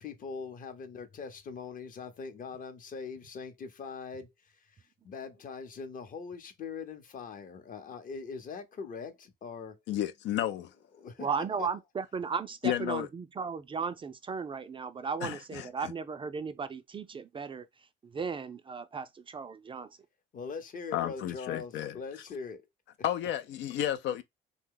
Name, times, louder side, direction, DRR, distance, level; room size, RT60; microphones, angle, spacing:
voice 1, 0.0-9.8 10.3-11.7 20.3-22.6 23.7-23.8, left 5 dB, 45° left, 0.8 m, -42 dB
voice 2, 9.9-10.7 12.6-13.1 15.2-15.9 20.9-21.9 23.0-24.2, left 12 dB, 65° left, 0.4 m, -32 dB
voice 3, 11.2-17.7 18.0-20.0, right 5 dB, 25° right, 0.4 m, -36 dB
2.7 x 2.2 x 3.7 m
supercardioid pair, 85°, 20 cm